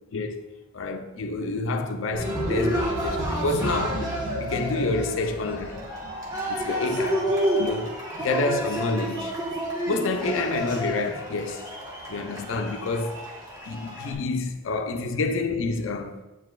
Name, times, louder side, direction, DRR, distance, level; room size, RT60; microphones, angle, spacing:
voice 1, 0.1-0.5 0.7-4.1 4.4-5.8 6.5-9.4 9.9-11.7 12.1-13.2 13.6-16.2, left 3 dB, 80° left, 0.5 m, -28 dB
Cheering, 2.1-14.1, equal, 20° right, 1.2 m, -30 dB
8.5 x 4.7 x 2.4 m
head